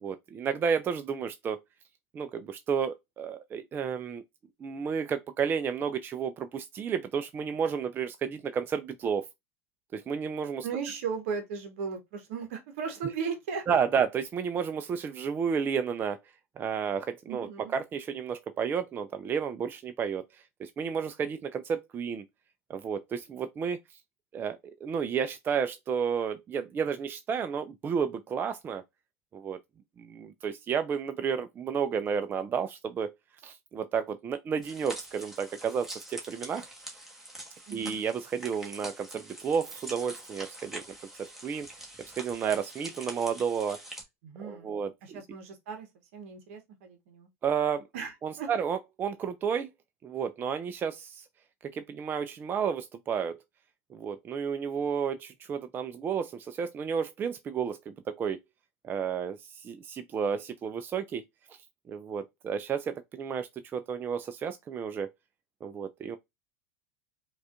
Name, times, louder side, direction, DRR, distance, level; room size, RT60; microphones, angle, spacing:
voice 1, 0.0-1.6 2.1-4.2 4.6-9.3 9.9-10.7 13.7-16.2 16.6-20.2 20.6-22.2 22.7-23.8 24.3-28.8 29.3-29.6 30.0-33.1 33.4-36.7 37.7-40.8 41.2-41.7 42.1-43.8 44.4-45.2 47.4-47.9 48.2-49.7 50.0-51.2 51.6-53.4 53.9-58.4 58.8-61.2 61.9-65.1 65.6-66.2, right 7 dB, 25° right, 0.3 m, -31 dB
voice 2, 10.6-13.7 17.3-17.7 37.7-38.0 44.2-45.9 46.1-47.3 47.9-48.5, right 6 dB, 60° right, 0.8 m, -37 dB
sound 1, 34.6-44.0, right 1 dB, 5° right, 1.2 m, -45 dB
4.8 x 2.3 x 2.4 m
hypercardioid pair, 85°, 8 cm